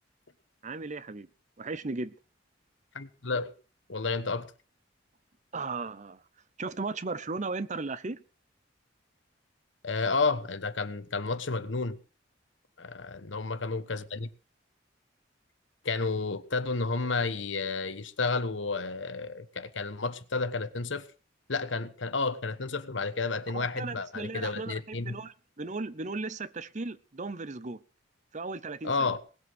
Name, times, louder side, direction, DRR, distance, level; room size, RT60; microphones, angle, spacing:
voice 1, 0.6-1.3 1.6-2.1 5.5-6.2 6.6-8.2 23.5-27.8 28.3-29.1, right 3 dB, 40° right, 0.8 m, -36 dB
voice 2, 2.9-3.5 3.9-4.5 9.8-12.0 12.8-14.3 15.8-21.1 21.5-25.2 28.8-29.2, left 4 dB, 80° left, 1.3 m, -31 dB
19.5 x 8.1 x 6.2 m
head